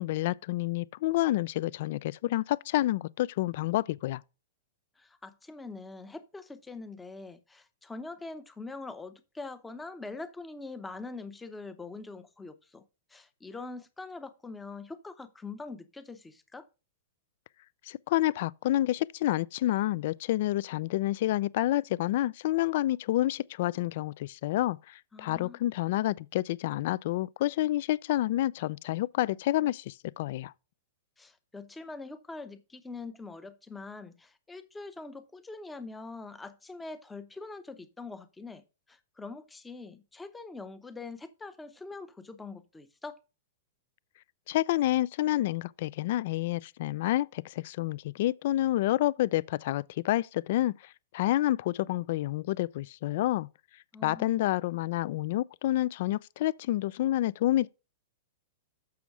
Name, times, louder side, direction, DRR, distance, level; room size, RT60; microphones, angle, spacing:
voice 1, 0.0-4.2 17.9-30.5 44.5-50.7 51.1-53.5 54.0-57.7, left 15 dB, 60° left, 0.3 m, -29 dB
voice 2, 5.0-12.8 13.1-16.7 25.1-25.6 31.2-38.6 38.9-43.2 53.9-54.5, left 3 dB, 10° left, 0.8 m, -43 dB
6.9 x 6.2 x 4.7 m
hypercardioid pair, 145°, 0 cm